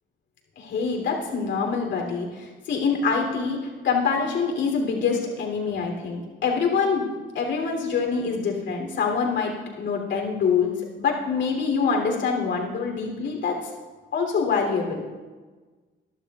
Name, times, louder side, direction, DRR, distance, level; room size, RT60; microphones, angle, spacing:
voice 1, 0.6-7.0 7.3-10.7 11.0-13.7 14.1-15.0, left 5 dB, 70° left, 1 dB, 3.2 m, -25 dB
21.5 x 11.5 x 2.4 m, 1.4 s
cardioid pair, 90°, 20 cm